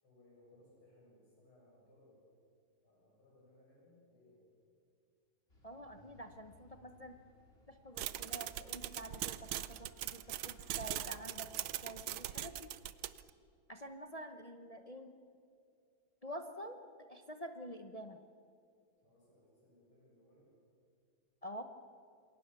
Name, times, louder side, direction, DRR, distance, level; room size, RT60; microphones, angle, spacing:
voice 1, 0.0-2.3 2.8-4.4 19.0-20.5, left 1 dB, 90° left, -4 dB, 8.2 m, -65 dB
sound 1, 5.5-12.1, left 1 dB, 25° left, 4.5 m, -65 dB
voice 2, 5.6-7.2 7.7-12.7 13.7-15.1 16.2-16.8 17.1-18.2 21.4-21.6, equal, 50° left, 6 dB, 0.4 m, -48 dB
sound 2, 8.0-13.3, right 13 dB, 85° right, 1.6 m, -41 dB
27.5 x 21.5 x 7.0 m, 2.4 s
omnidirectional pair, 2.3 m